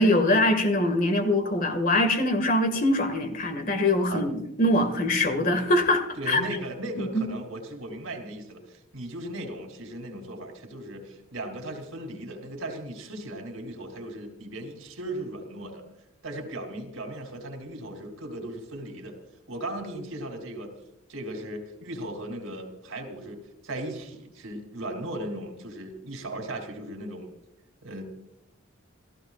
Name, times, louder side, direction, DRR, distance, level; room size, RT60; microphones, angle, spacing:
voice 1, 0.0-6.4 7.0-7.3, left 1 dB, 40° left, 6 dB, 2.0 m, -23 dB
voice 2, 6.2-15.8 16.2-19.2 19.5-20.7 21.1-27.3 27.8-28.0, right 1 dB, 80° right, 3 dB, 3.3 m, -37 dB
27.5 x 15.0 x 2.5 m, 0.82 s
head